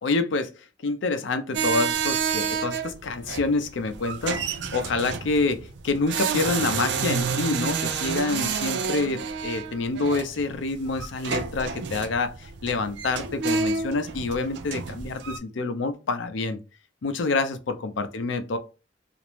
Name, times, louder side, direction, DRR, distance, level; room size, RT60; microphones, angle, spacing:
voice 1, 0.0-0.5 0.8-16.6 17.0-18.6, left 3 dB, 80° left, 0.5 m, -27 dB
sound 1, 1.5-15.4, right 6 dB, 65° right, 0.3 m, -29 dB
2.5 x 2.0 x 3.0 m
head